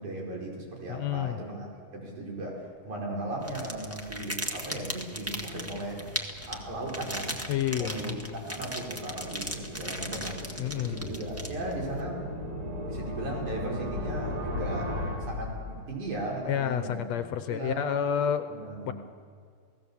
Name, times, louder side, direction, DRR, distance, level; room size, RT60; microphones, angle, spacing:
voice 1, 0.0-1.7 1.9-6.1 6.5-7.4 7.8-12.2 12.8-15.0 15.3-17.1 17.5-18.0 18.5-18.9, right 2 dB, 80° right, -2 dB, 6.3 m, -37 dB
voice 2, 0.9-1.4 7.5-8.4 10.6-11.1 16.4-18.5 18.9-19.0, left 9 dB, 70° left, 9 dB, 2.0 m, -30 dB
sound 1, 3.4-11.9, equal, 10° right, 0.8 m, -37 dB
sound 2, 3.4-16.2, left 1 dB, 50° right, 3.6 m, -38 dB
29.0 x 17.5 x 7.3 m, 2.1 s
omnidirectional pair, 3.4 m